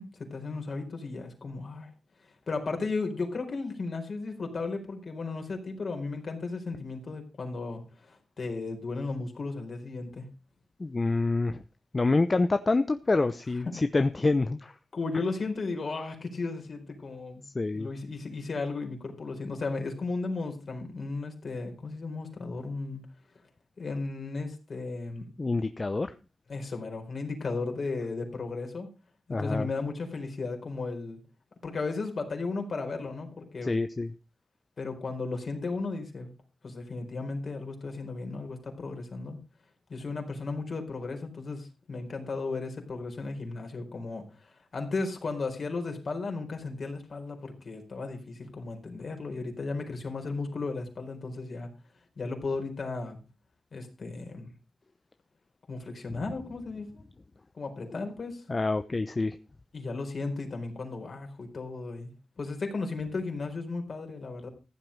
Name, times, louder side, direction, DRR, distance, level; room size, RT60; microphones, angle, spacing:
voice 1, 0.0-1.9 2.2-10.3 14.9-17.4 17.7-23.0 23.8-25.3 26.5-28.9 29.3-31.2 31.6-33.7 34.8-36.3 36.6-39.4 39.9-51.7 52.2-53.2 53.7-54.5 55.7-57.0 57.5-58.4 59.7-62.1 62.4-64.5, left 3 dB, 60° left, 4 dB, 4.4 m, -35 dB
voice 2, 10.8-11.6 11.9-14.8 17.4-17.9 25.4-26.1 29.3-29.7 33.6-34.1 56.1-56.2 57.9-58.1 58.5-59.4, left 3 dB, 35° left, 11 dB, 0.8 m, -27 dB
15.0 x 7.7 x 5.3 m, 0.32 s
cardioid pair, 55°, 0 cm